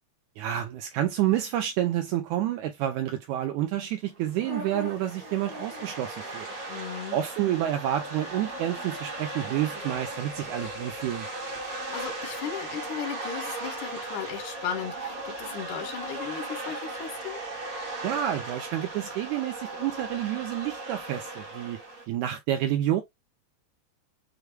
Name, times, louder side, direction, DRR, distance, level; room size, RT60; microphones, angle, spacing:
voice 1, 0.4-6.5 7.1-11.3 18.0-21.8 22.1-23.0, right 12 dB, 80° right, 1.7 m, -29 dB
sound 1, 4.1-22.1, right 2 dB, 60° right, 0.9 m, -37 dB
voice 2, 6.7-7.2 11.6-17.4, left 8 dB, 75° left, 2.1 m, -36 dB
6.5 x 2.2 x 3.0 m
omnidirectional pair, 3.8 m